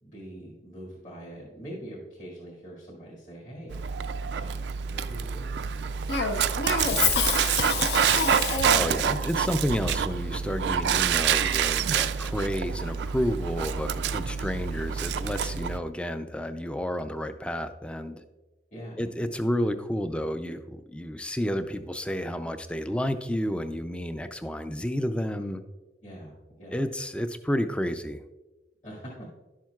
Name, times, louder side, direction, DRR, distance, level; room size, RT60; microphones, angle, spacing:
voice 1, 0.0-4.0 4.3-6.8 18.7-19.1 26.0-26.9 28.8-29.3, equal, 40° left, -8 dB, 2.0 m, -44 dB
Dog, 3.7-15.8, right 7 dB, 75° right, 0.3 m, -27 dB
Cough, 6.1-9.0, left 5 dB, 70° left, 0.8 m, -27 dB
voice 2, 8.7-18.2 19.0-25.6 26.7-28.2, equal, 5° left, 10 dB, 0.3 m, -31 dB
11.5 x 7.3 x 2.3 m, 1.1 s
head